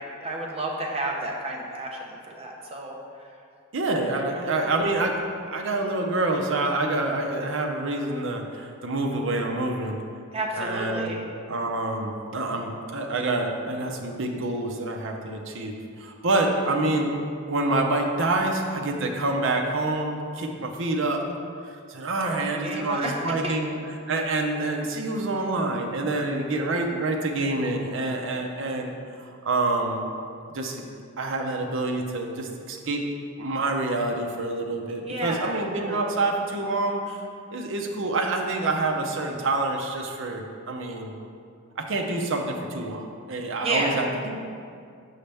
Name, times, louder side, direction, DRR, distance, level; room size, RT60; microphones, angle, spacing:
voice 1, 0.0-3.3 4.2-4.9 10.3-11.2 22.2-23.2 23.4-23.5 35.0-36.0 43.6-44.0, right 2 dB, 30° right, -1 dB, 0.8 m, -31 dB
voice 2, 3.7-5.2 5.5-10.0 10.6-11.2 11.5-17.2 17.5-21.2 21.6-23.8 24.1-28.9 29.2-30.1 30.5-30.9 31.2-33.0 33.4-37.2 37.5-41.1 41.8-44.4, right 2 dB, 60° right, 2 dB, 0.7 m, -27 dB
6.4 x 5.5 x 3.4 m, 2.3 s
head